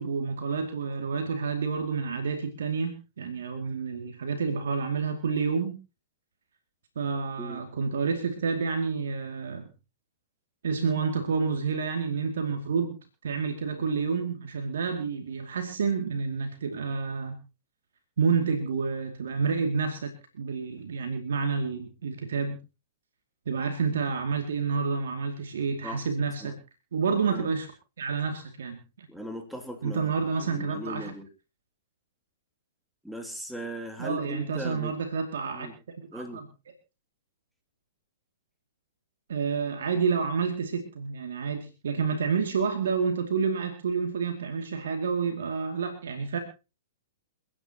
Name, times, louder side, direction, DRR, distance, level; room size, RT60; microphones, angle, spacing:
voice 1, 0.0-5.7 7.0-9.7 10.6-17.4 18.2-22.6 23.5-26.5 26.9-27.7 28.0-29.1 29.8-31.1 34.0-36.5 39.3-46.4, right 5 dB, 70° right, 5 dB, 2.4 m, -29 dB
voice 2, 29.1-30.1 30.4-31.3 33.0-34.9 35.5-35.7 36.1-36.4, equal, ahead, 4 dB, 3.0 m, -38 dB
29.0 x 9.9 x 2.9 m, 0.31 s
figure-of-eight pair, 110°, 0 cm